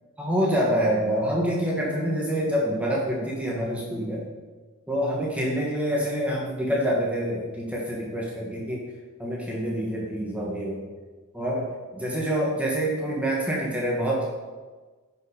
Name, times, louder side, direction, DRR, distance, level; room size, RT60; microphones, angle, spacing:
voice 1, 0.2-4.3 4.9-8.8 9.2-10.8 11.3-14.3, equal, 5° right, -4 dB, 1.4 m, -26 dB
11.5 x 5.7 x 4.9 m, 1.3 s
head